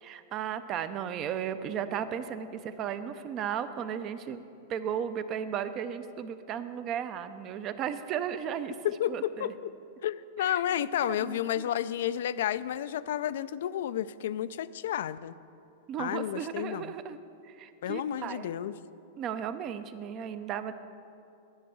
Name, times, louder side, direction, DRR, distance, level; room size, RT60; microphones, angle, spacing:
voice 1, 0.0-4.4 4.7-8.7 9.1-9.5 10.5-10.6 11.2-11.4 15.9-17.2 17.6-18.5 19.2-20.7, right 8 dB, 35° right, 11 dB, 0.5 m, -35 dB
voice 2, 8.8-9.7 10.0-15.3 16.0-16.9 17.8-18.7, left 11 dB, 75° left, 15 dB, 0.3 m, -31 dB
10.0 x 5.4 x 7.9 m, 2.7 s
hypercardioid pair, 140°, 0 cm